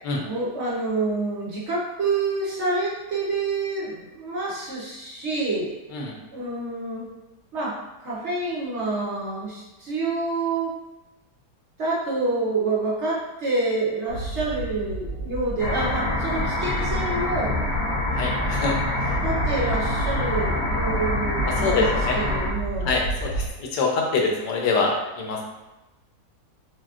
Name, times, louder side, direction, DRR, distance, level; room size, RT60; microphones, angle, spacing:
voice 1, 0.1-5.7 6.3-7.1 7.5-10.7 11.8-17.5 19.0-23.0, right 3 dB, 50° right, -5 dB, 0.9 m, -27 dB
sound 1, 14.1-23.5, right 2 dB, 80° right, 1.5 m, -32 dB
sound 2, 15.6-22.5, left 2 dB, 65° left, 1.5 m, -26 dB
voice 2, 18.2-18.8 21.6-22.2 22.9-23.3 23.7-25.4, left 4 dB, 90° left, 0 dB, 1.3 m, -24 dB
5.9 x 2.2 x 2.4 m, 1.0 s
omnidirectional pair, 1.8 m